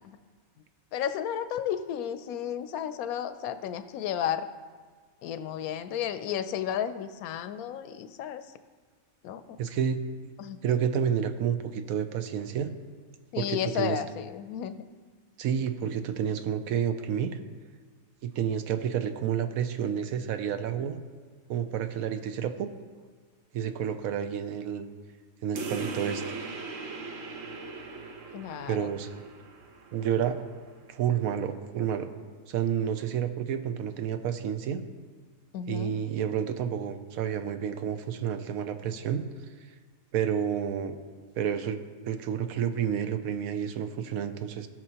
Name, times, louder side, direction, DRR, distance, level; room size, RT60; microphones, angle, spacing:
voice 1, 0.9-4.5 5.2-8.4 9.2-9.4 10.4-10.6 13.3-14.8 28.3-28.9 35.5-36.0, left 9 dB, 85° left, 11 dB, 1.0 m, -32 dB
voice 2, 9.6-10.0 10.6-12.7 13.4-14.0 15.4-17.4 18.2-21.0 21.5-22.7 23.5-24.9 25.4-26.4 28.7-29.1 29.9-30.4 30.9-32.1 32.5-34.8 35.7-39.2 40.1-41.0 41.4-41.8 42.0-44.7, right 8 dB, 80° right, 9 dB, 1.1 m, -30 dB
sound 1, 25.6-30.6, right 3 dB, 65° right, 1.2 m, -39 dB
17.5 x 6.0 x 2.9 m, 1.5 s
omnidirectional pair, 1.5 m